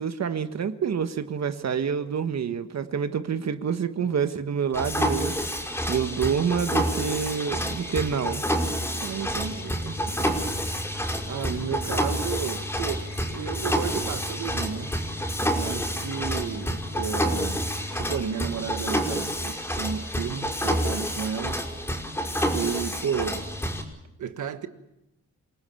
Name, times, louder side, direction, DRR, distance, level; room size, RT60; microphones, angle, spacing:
voice 1, 0.0-5.5 5.9-8.4 9.8-9.9, right 7 dB, 60° right, 1.5 m, -27 dB
Mechanisms, 4.7-23.8, equal, 5° left, 5.6 m, -28 dB
voice 2, 9.0-10.6 11.3-15.0 15.5-21.6 22.5-23.5 24.2-24.7, right 7 dB, 80° right, 1.6 m, -33 dB
28.5 x 18.5 x 7.1 m
cardioid pair, 90°, 30 cm